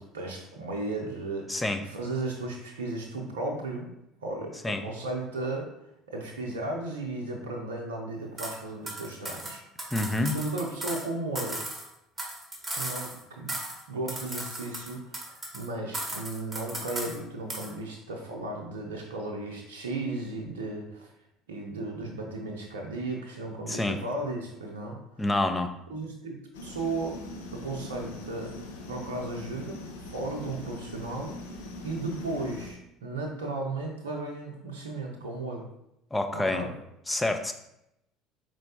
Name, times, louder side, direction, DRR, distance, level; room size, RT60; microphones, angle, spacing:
voice 1, 0.0-3.9 4.2-5.7 6.1-11.6 12.7-13.5 13.9-21.1 21.5-25.2 25.9-27.2 27.5-28.5 28.9-29.8 30.1-31.3 31.8-35.7 36.3-36.7, right 2 dB, 85° right, 0 dB, 0.6 m, -35 dB
voice 2, 1.5-1.8 4.6-4.8 9.9-10.4 23.7-24.0 25.2-25.7 36.1-36.7 37.1-37.5, left 2 dB, 15° left, 7 dB, 0.5 m, -27 dB
sound 1, 8.4-8.6 8.9-11.1 11.3-13.2 13.5-13.8 14.1-15.7 15.9-17.2 17.5-17.7, right 1 dB, 20° right, 1.1 m, -36 dB
sound 2, 26.5-32.7, left 1 dB, 80° left, 0.5 m, -42 dB
4.3 x 3.1 x 2.7 m, 0.82 s
hypercardioid pair, 70°, 0 cm